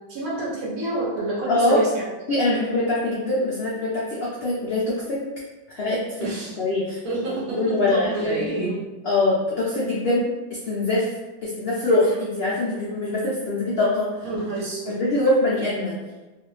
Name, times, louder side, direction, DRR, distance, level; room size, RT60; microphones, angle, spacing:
voice 1, 0.1-2.0 6.2-6.6 7.0-8.8 14.2-15.0, right 2 dB, 65° right, -5 dB, 1.0 m, -27 dB
voice 2, 1.5-1.8 2.3-5.2 5.7-6.2 6.6-7.0 7.6-8.5 9.0-11.1 11.4-14.1 14.9-15.9, left 2 dB, 75° left, -7 dB, 0.5 m, -23 dB
2.6 x 2.4 x 3.0 m, 1.2 s
omnidirectional pair, 1.8 m